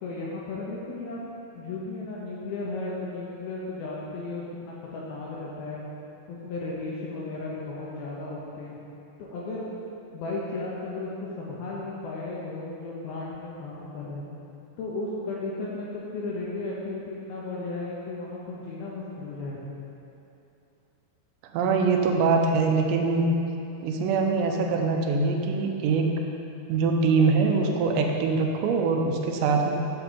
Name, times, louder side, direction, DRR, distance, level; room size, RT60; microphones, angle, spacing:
voice 1, 0.0-1.2 1.6-5.9 6.3-8.8 9.2-9.7 10.1-14.3 14.8-19.7, left 3 dB, 75° left, -5 dB, 2.4 m, -35 dB
voice 2, 21.5-23.3 23.8-26.1 26.7-29.7, right 4 dB, 85° right, 2 dB, 2.9 m, -23 dB
8.6 x 4.3 x 6.8 m, 2.8 s
omnidirectional pair, 5.2 m